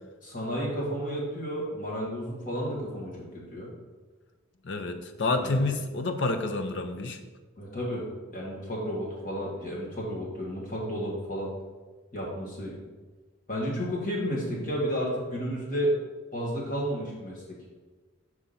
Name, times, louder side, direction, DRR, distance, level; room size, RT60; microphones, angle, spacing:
voice 1, 0.2-3.7 5.4-5.6 7.6-8.0 8.3-11.5 12.1-12.8 13.5-15.9 16.3-17.4, equal, 40° left, -4 dB, 1.9 m, -32 dB
voice 2, 4.6-7.2, left 2 dB, 60° left, 6 dB, 0.6 m, -28 dB
5.1 x 4.8 x 5.6 m, 1.3 s
head